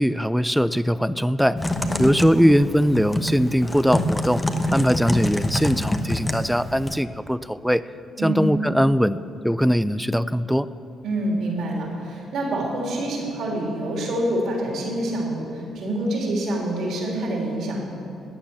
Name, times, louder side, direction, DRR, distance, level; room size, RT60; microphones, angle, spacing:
voice 1, 0.0-1.6 2.0-4.4 4.7-7.8 8.2-9.2 9.4-10.7, equal, ahead, 15 dB, 0.4 m, -20 dB
Typing, 1.6-6.9, left 1 dB, 15° left, 0.9 m, -26 dB
voice 2, 1.8-2.4 8.2-8.5 11.0-17.8, right 1 dB, 75° right, -2 dB, 3.3 m, -27 dB
13.5 x 9.2 x 7.2 m, 2.7 s
cardioid pair, 90°, 0 cm